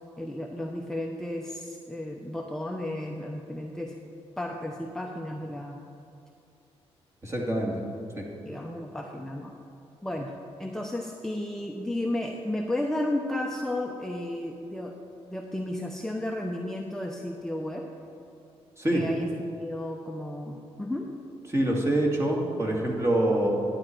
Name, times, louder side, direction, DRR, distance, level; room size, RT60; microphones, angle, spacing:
voice 1, 0.2-3.9 4.4-5.8 8.4-9.5 10.0-10.3 10.6-15.0 15.3-17.9 18.9-21.1, left 1 dB, 5° left, 0 dB, 0.8 m, -33 dB
voice 2, 7.2-7.8 8.2-8.3 18.8-19.0 21.5-23.5, right 1 dB, 25° right, -1 dB, 2.1 m, -25 dB
11.5 x 8.8 x 4.5 m, 2.7 s
cardioid pair, 85°, 11 cm